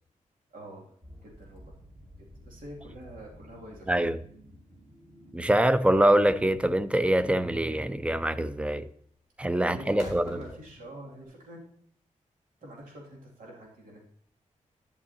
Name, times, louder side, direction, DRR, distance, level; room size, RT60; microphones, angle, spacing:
voice 1, 0.5-0.9 1.2-1.7 2.4-4.1 9.6-11.6 12.6-14.1, right 1 dB, 85° right, 2.6 m, -45 dB
sound 1, 1.0-7.8, equal, 30° right, 1.7 m, -53 dB
sound 2, 4.4-11.3, equal, 60° right, 4.5 m, -50 dB
voice 2, 5.3-8.9 9.4-10.2, right 1 dB, 10° right, 0.4 m, -24 dB
11.0 x 10.0 x 2.8 m
wide cardioid pair, 130°, 13 cm